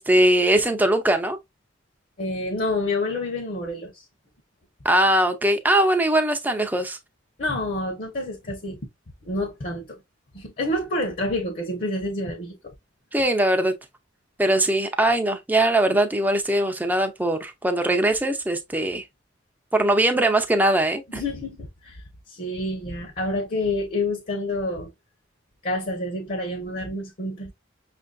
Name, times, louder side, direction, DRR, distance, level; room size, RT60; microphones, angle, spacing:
voice 1, 0.0-1.4 4.8-7.0 13.1-13.7 14.4-19.0 19.7-21.2, right 1 dB, 10° right, 0.5 m, -21 dB
voice 2, 2.2-4.0 7.4-8.8 9.2-10.0 10.3-12.6 21.1-24.9 25.6-27.5, left 1 dB, 45° left, 0.8 m, -28 dB
5.9 x 2.5 x 2.3 m
head